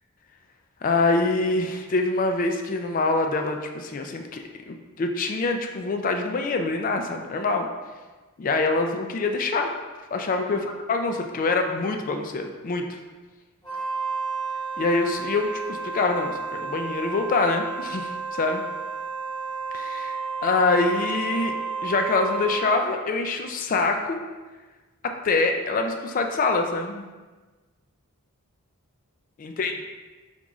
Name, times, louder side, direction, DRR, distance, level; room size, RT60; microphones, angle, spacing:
voice 1, 0.8-7.7 8.4-9.8 10.1-10.6 10.9-12.8 14.8-18.6 19.7-21.5 21.8-24.2 25.0-27.1 29.4-29.8, left 3 dB, 35° left, 4 dB, 0.3 m, -25 dB
Wind instrument woodwind instrument, 13.6-22.9, right 4 dB, 20° left, 1.0 m, -32 dB
3.7 x 3.0 x 3.6 m, 1.3 s
head